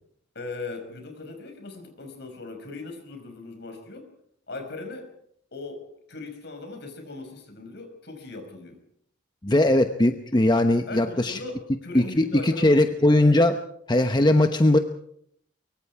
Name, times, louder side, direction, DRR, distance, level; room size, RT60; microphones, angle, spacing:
voice 1, 0.3-4.1 4.5-5.1 5.5-8.8 10.9-12.8, left 3 dB, 60° left, 5 dB, 5.7 m, -39 dB
voice 2, 9.4-11.4 11.9-13.6 13.9-14.8, left 1 dB, 25° left, 7 dB, 1.0 m, -20 dB
23.5 x 23.5 x 4.9 m, 0.68 s
head